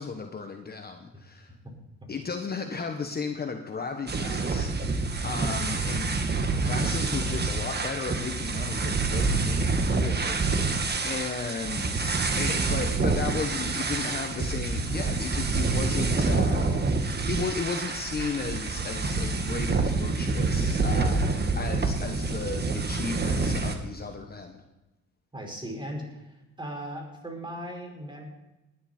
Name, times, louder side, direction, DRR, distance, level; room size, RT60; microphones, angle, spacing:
voice 1, 0.0-1.5 2.1-6.2 6.6-10.8 11.0-24.6, left 5 dB, 30° left, 5 dB, 1.2 m, -35 dB
sound 1, 4.1-23.8, right 3 dB, 35° right, 1.8 m, -27 dB
voice 2, 25.3-28.2, equal, 15° right, 0 dB, 5.2 m, -38 dB
19.5 x 11.0 x 4.4 m, 1.0 s
cardioid pair, 90°, 30 cm